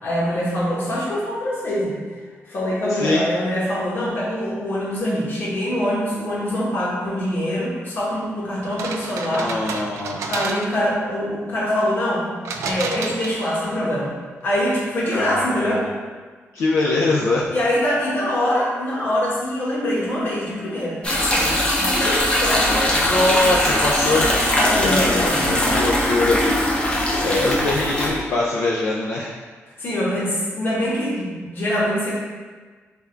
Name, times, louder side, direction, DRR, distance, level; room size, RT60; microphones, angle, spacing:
voice 1, 0.0-2.0 2.5-9.8 10.3-12.3 12.6-14.1 14.4-15.8 17.5-23.0 24.5-25.6 27.4-27.8 29.8-32.2, equal, 45° left, -6 dB, 1.1 m, -24 dB
voice 2, 2.9-3.2 9.3-10.3 15.1-15.9 16.5-17.5 22.9-24.3 24.8-26.4 26.8-29.3, left 2 dB, 75° left, -4 dB, 0.4 m, -23 dB
sound 1, 8.6-10.9 12.4-13.7, right 4 dB, 90° right, 0.3 m, -31 dB
sound 2, 21.0-28.1, left 1 dB, 20° left, 0.6 m, -20 dB
3.4 x 2.4 x 4.3 m, 1.4 s
wide cardioid pair, 160°, 5 cm